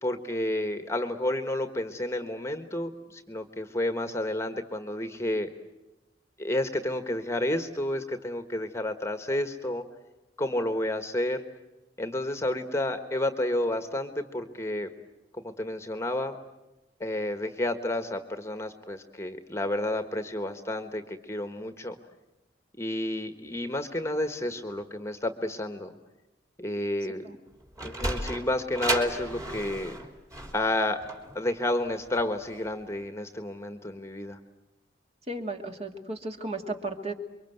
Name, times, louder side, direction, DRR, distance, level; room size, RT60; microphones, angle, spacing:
voice 1, 0.0-5.5 6.4-9.8 10.4-11.4 12.0-14.9 15.4-16.4 17.0-22.0 22.8-25.9 26.6-27.3 27.8-29.9 30.5-31.0 31.3-34.4, left 1 dB, 15° left, 8 dB, 1.4 m, -30 dB
Sliding door, 27.5-32.7, right 1 dB, 20° right, 3.4 m, -34 dB
voice 2, 35.3-37.1, right 2 dB, 35° right, 4 dB, 2.4 m, -34 dB
29.0 x 23.5 x 8.0 m, 1.0 s
head